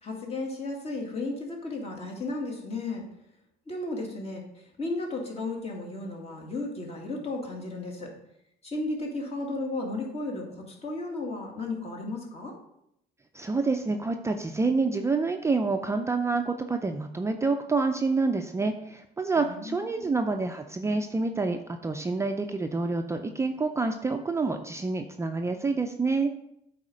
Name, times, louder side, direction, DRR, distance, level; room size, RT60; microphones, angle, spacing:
voice 1, 0.0-3.1 3.7-4.4 4.8-8.1 8.6-12.5 19.4-20.1, left 2 dB, 40° left, 0 dB, 2.2 m, -34 dB
voice 2, 13.3-26.3, right 3 dB, 15° right, 5 dB, 0.5 m, -28 dB
8.4 x 4.2 x 5.0 m, 0.77 s
cardioid pair, 110°, 17 cm